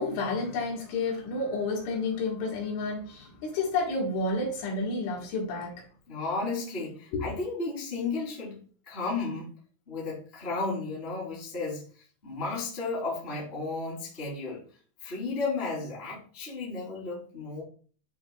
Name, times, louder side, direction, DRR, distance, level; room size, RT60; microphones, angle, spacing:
voice 1, 0.0-5.8 7.1-7.2, left 3 dB, 75° left, 4.0 m, -30 dB
voice 2, 6.1-9.5 9.9-11.8 12.2-14.6 15.0-17.6, left 3 dB, 15° left, 2.4 m, -33 dB
11.5 x 5.0 x 2.3 m
omnidirectional pair, 5.7 m